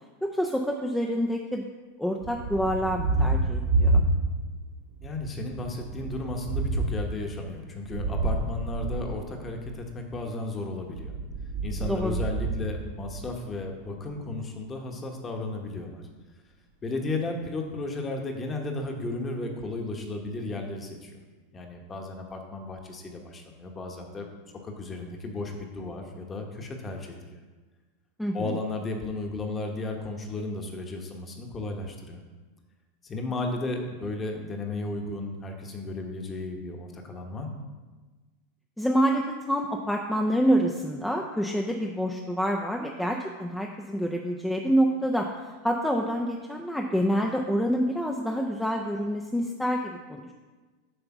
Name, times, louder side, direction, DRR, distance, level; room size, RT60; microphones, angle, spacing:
voice 1, 0.2-1.7 2.0-4.0 11.9-12.2 28.2-28.6 38.8-50.3, equal, 5° left, 0 dB, 0.5 m, -27 dB
Thunder, 2.2-4.6 5.0-9.8 10.8-13.5, right 2 dB, 80° right, 1.2 m, -29 dB
voice 2, 5.0-11.1 11.6-16.0 16.8-21.2 21.5-24.3 24.6-27.2 28.3-32.2 33.0-37.6, left 2 dB, 20° left, 3 dB, 1.1 m, -34 dB
7.8 x 3.4 x 5.9 m, 1.3 s
supercardioid pair, 125°, 0 cm